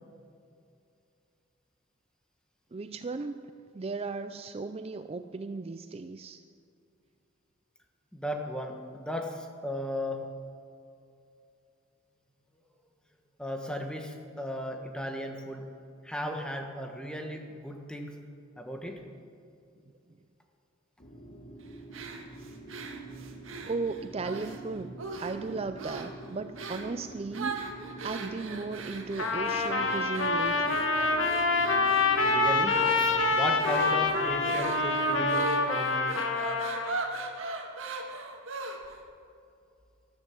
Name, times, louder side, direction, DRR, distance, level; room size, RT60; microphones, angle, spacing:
voice 1, 2.7-6.4 23.6-27.6 28.0-31.1, right 3 dB, 30° right, 10 dB, 0.4 m, -36 dB
voice 2, 8.1-10.3 13.4-15.6 16.0-18.2 18.6-19.0 32.2-36.2, equal, 5° left, 3 dB, 1.4 m, -36 dB
sound 1, 21.0-35.3, right 2 dB, 35° left, 1.6 m, -46 dB
sound 2, 21.9-24.6 25.0-25.5 25.8-26.1 26.6-26.9 27.3-39.0, right 3 dB, 80° right, 1.8 m, -39 dB
Trumpet, 29.2-36.9, left 3 dB, 70° left, 1.5 m, -26 dB
13.5 x 12.5 x 7.6 m, 2.6 s
head